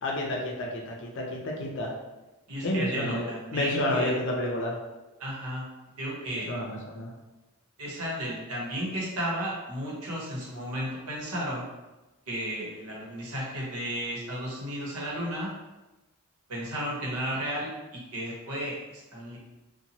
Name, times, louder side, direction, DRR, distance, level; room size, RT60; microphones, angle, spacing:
voice 1, 0.0-1.9 2.6-4.8 6.3-7.1, left 1 dB, 55° left, -1 dB, 0.5 m, -30 dB
voice 2, 2.5-4.1 5.2-5.7 6.0-6.5 7.8-11.6 12.3-15.5 16.5-19.4, equal, 85° right, -4 dB, 1.0 m, -33 dB
2.8 x 2.2 x 2.7 m, 1.1 s
head